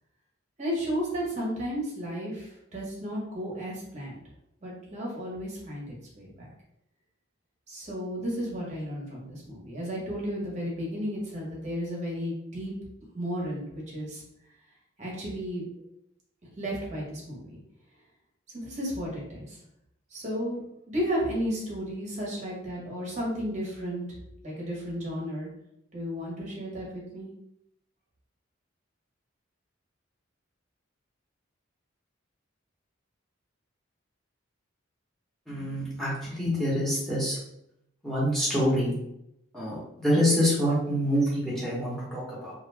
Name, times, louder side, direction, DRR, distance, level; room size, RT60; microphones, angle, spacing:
voice 1, 0.6-4.2 4.6-6.5 7.7-12.7 13.0-14.2 15.0-15.7 16.4-17.6 18.5-19.6 20.1-24.2 24.4-25.5 25.9-27.3, equal, 35° right, -4 dB, 0.8 m, -33 dB
voice 2, 35.5-37.4 38.0-38.9 39.5-42.5, equal, ahead, -8 dB, 0.9 m, -26 dB
2.4 x 2.1 x 3.2 m, 0.80 s
head